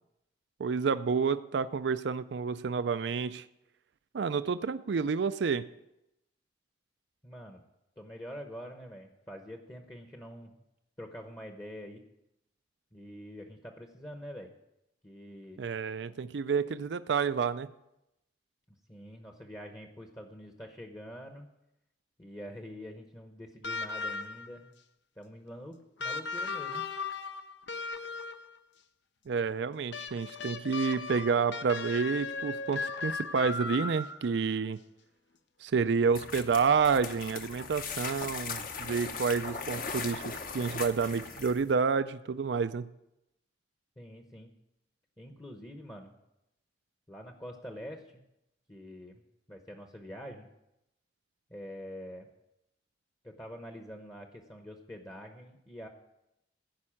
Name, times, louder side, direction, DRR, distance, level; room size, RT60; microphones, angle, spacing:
voice 1, 0.6-3.5 4.1-5.6 15.6-17.7 29.3-34.8 35.6-42.9, right 5 dB, 70° right, 14 dB, 0.4 m, -29 dB
voice 2, 7.2-7.6 8.0-10.6 11.0-12.0 12.9-14.5 15.0-15.6 18.9-21.5 22.2-24.7 25.2-26.8 44.0-44.5 45.2-46.2 47.1-48.2 48.7-49.2 49.5-50.5 51.5-52.3 53.2-55.9, equal, 15° left, 4 dB, 0.9 m, -45 dB
sound 1, 23.6-24.6 26.0-28.6 29.9-34.4 35.7-35.8, left 4 dB, 75° left, 0.8 m, -37 dB
sound 2, 36.1-41.7, left 5 dB, 45° left, 0.9 m, -39 dB
15.5 x 5.4 x 8.6 m, 0.88 s
head